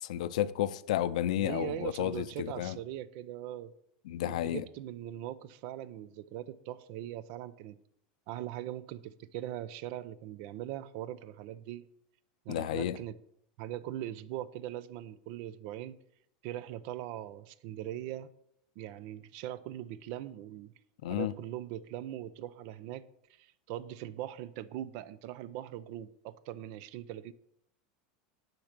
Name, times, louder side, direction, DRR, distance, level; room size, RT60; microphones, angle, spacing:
voice 1, 0.0-2.8 4.1-4.6 12.5-13.0 21.0-21.3, left 12 dB, 80° left, 0.6 m, -32 dB
voice 2, 1.4-3.7 4.3-7.8 8.3-11.8 12.4-13.2 13.6-16.0 16.4-18.3 18.8-20.7 21.1-27.3, right 12 dB, 55° right, 0.7 m, -41 dB
11.0 x 5.9 x 6.7 m
supercardioid pair, 135°, 4 cm